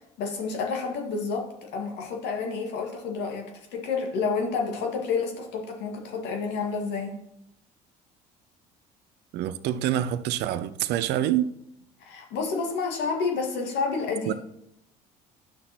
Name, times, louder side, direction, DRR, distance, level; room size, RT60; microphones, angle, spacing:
voice 1, 0.2-7.1 12.0-14.3, left 4 dB, 65° left, 1.9 m, -29 dB
voice 2, 9.3-11.5 14.3-14.4, right 12 dB, 60° right, 0.6 m, -26 dB
11.5 x 5.9 x 3.0 m
hypercardioid pair, 65°, 19 cm